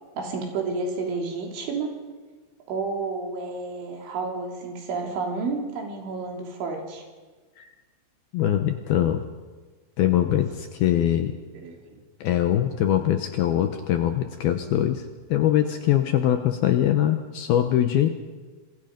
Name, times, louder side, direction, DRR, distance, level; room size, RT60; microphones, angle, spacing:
voice 1, 0.2-2.0 2.7-7.0 11.5-12.0, right 4 dB, 80° right, 1 dB, 5.6 m, -31 dB
voice 2, 8.3-9.2 10.0-11.4 12.2-18.1, left 11 dB, 75° left, 7 dB, 2.3 m, -22 dB
27.0 x 22.5 x 5.2 m, 1.3 s
omnidirectional pair, 5.4 m